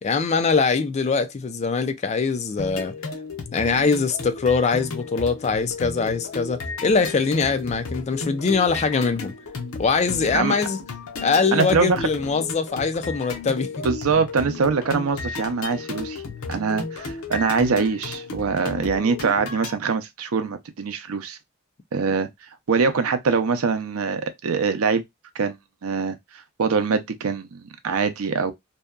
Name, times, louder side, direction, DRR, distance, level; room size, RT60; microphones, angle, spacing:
voice 1, 0.0-2.9 3.5-9.3 9.8-10.8 11.2-13.7, left 4 dB, 30° left, 0.3 m, -22 dB
sound 1, 2.6-19.7, left 4 dB, 75° left, 0.6 m, -34 dB
voice 2, 11.5-12.0 13.8-16.2 16.5-21.4 21.9-22.3 22.7-25.0 25.3-28.5, right 5 dB, 80° right, 0.5 m, -23 dB
2.7 x 2.2 x 2.3 m
head